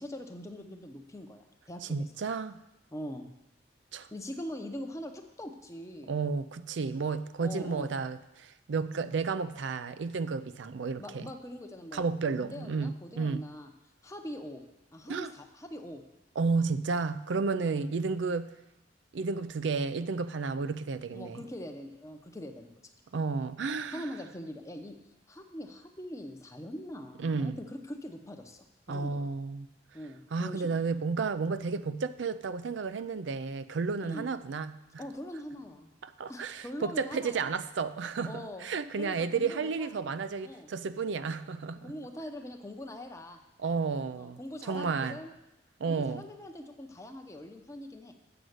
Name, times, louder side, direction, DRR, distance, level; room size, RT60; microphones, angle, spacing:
voice 1, 0.0-2.1 2.9-3.3 4.1-6.2 7.4-7.9 11.0-13.7 14.0-14.6 14.9-16.0 17.6-17.9 21.1-22.7 23.9-25.0 25.3-29.2 29.9-30.7 34.0-34.3 35.0-35.9 36.3-37.5 38.2-38.7 39.0-40.0 40.4-40.7 41.8-43.4 44.2-45.3 45.9-48.1, left 1 dB, 15° left, 0.7 m, -42 dB
voice 2, 1.9-2.6 3.9-4.1 6.1-11.3 11.9-13.5 15.1-15.3 16.4-18.6 19.1-21.4 23.1-24.1 27.2-27.6 28.9-29.7 30.3-35.0 36.0-41.9 43.6-45.2 45.8-46.2, right 4 dB, 75° right, 0.4 m, -32 dB
7.9 x 6.3 x 7.9 m
head